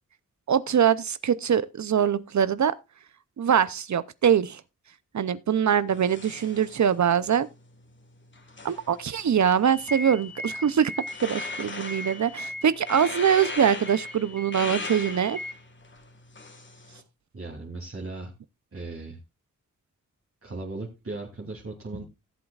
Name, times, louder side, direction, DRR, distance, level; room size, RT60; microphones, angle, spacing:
voice 1, 0.5-2.8 3.4-4.6 5.1-7.5 8.6-10.9 11.2-15.4, right 8 dB, 60° right, 0.6 m, -23 dB
sound 1, 5.9-17.0, left 3 dB, 35° left, 1.7 m, -40 dB
sound 2, 9.6-15.5, left 1 dB, 5° left, 1.0 m, -39 dB
voice 2, 17.3-18.3 18.7-19.2 20.4-22.0, right 2 dB, 45° right, 3.0 m, -37 dB
18.0 x 7.8 x 2.4 m
wide cardioid pair, 100°, 32 cm